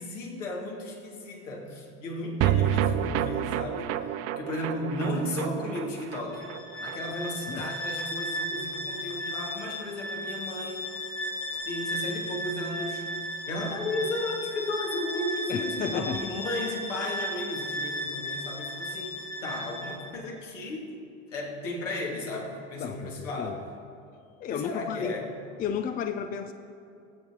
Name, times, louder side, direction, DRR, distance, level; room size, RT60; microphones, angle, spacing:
voice 1, 0.0-4.1 4.4-6.4 6.8-10.9 11.6-13.1 13.5-20.9 21.3-23.6 24.5-25.3, left 1 dB, 70° left, -1 dB, 2.2 m, -34 dB
sound 1, 2.4-8.8 9.1-9.2 9.5-9.6, right 10 dB, 40° right, 0.5 m, -30 dB
Bowed string instrument, 6.3-20.1, equal, 85° left, 2.5 m, -35 dB
voice 2, 15.5-16.2 22.8-23.6 24.4-25.2 25.6-26.5, left 7 dB, 25° left, 9 dB, 0.5 m, -32 dB
23.0 x 7.9 x 2.9 m, 2.5 s
figure-of-eight pair, 75°, 38 cm